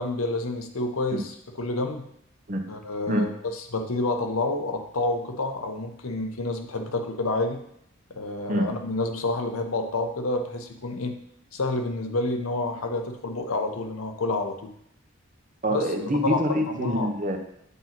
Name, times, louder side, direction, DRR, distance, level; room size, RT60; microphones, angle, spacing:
voice 1, 0.0-2.1 2.7-7.6 8.1-11.2 11.5-14.7 15.7-15.9 16.2-16.4 16.7-17.1, left 2 dB, 85° left, 5 dB, 0.8 m, -29 dB
voice 2, 15.6-17.4, equal, 35° right, 4 dB, 0.8 m, -25 dB
8.2 x 2.9 x 5.8 m, 0.72 s
head